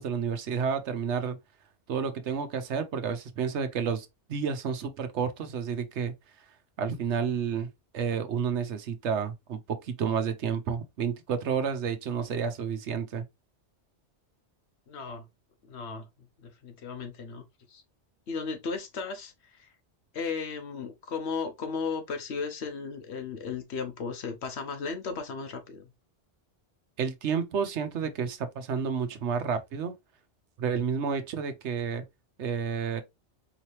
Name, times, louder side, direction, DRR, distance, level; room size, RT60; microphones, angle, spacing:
voice 1, 0.0-1.4 1.9-6.1 6.8-7.7 7.9-13.2 27.0-29.9 30.6-32.0 32.4-33.0, right 6 dB, 80° right, 1.1 m, -30 dB
voice 2, 14.9-15.3 15.6-16.1 16.4-17.4 17.7-17.8 18.3-19.7 20.1-25.9, left 5 dB, 70° left, 1.2 m, -35 dB
4.7 x 2.9 x 3.0 m
omnidirectional pair, 1.2 m